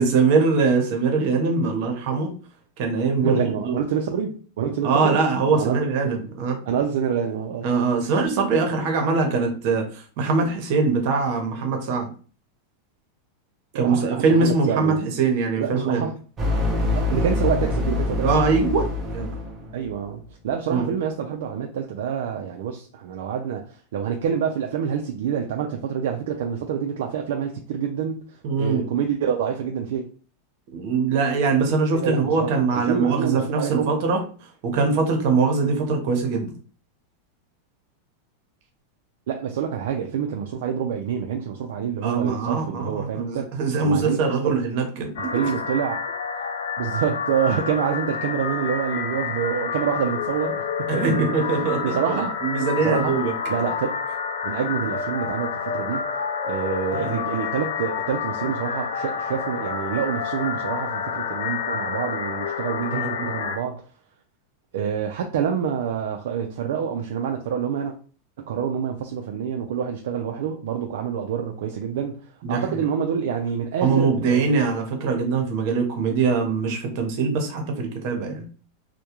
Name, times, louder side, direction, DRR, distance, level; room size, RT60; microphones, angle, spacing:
voice 1, 0.0-2.3 2.8-3.8 4.8-6.6 7.6-12.1 13.7-16.1 18.2-19.4 20.7-20.9 28.4-28.9 30.7-34.2 34.6-36.5 42.0-45.5 50.9-53.3 56.9-57.2 62.9-63.3 72.4-72.8 73.8-78.5, right 4 dB, 55° right, 4 dB, 0.8 m, -22 dB
voice 2, 3.2-5.2 5.5-6.1 6.7-7.7 13.7-15.0 15.6-16.1 16.9-18.2 19.7-23.6 23.9-28.2 28.6-30.0 32.0-33.9 39.3-43.5 43.8-44.3 45.3-46.0 46.8-51.0 51.6-52.3 52.8-53.2 53.5-53.9 54.4-56.1 56.4-63.8 64.7-67.9 68.4-72.2 72.5-74.5, right 8 dB, 75° right, 2 dB, 0.3 m, -27 dB
sound 1, 16.4-20.0, left 2 dB, 25° right, 0.6 m, -25 dB
sound 2, 45.2-63.6, left 6 dB, 85° left, 0.3 m, -29 dB
2.3 x 2.1 x 2.8 m, 0.40 s
supercardioid pair, 125°, 0 cm